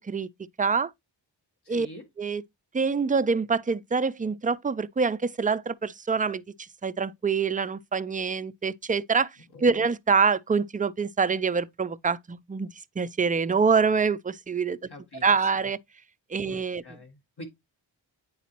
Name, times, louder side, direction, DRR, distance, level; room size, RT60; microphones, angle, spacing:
voice 1, 0.6-0.9 1.7-1.9 2.2-2.4 2.7-6.4 6.8-9.3 9.6-12.7 13.0-14.8 15.2-15.8 16.3-16.8, right 5 dB, 20° right, 0.4 m, -25 dB
voice 2, 1.6-2.1 9.5-9.8 14.9-15.7 16.4-17.5, left 1 dB, 60° left, 1.9 m, -46 dB
9.1 x 4.0 x 2.9 m
wide cardioid pair, 50°, 45 cm